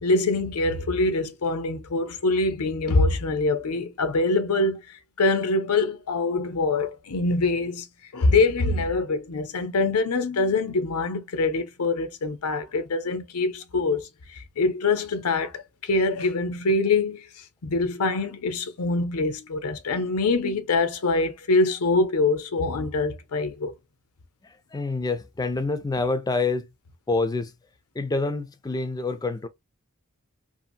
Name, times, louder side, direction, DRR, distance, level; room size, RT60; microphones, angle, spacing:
voice 1, 0.0-7.9 8.1-17.2 17.6-23.7, left 3 dB, 85° left, 0.6 m, -24 dB
voice 2, 24.4-26.7 27.1-27.5 27.9-29.5, left 3 dB, 15° left, 0.4 m, -27 dB
2.8 x 2.5 x 2.6 m
head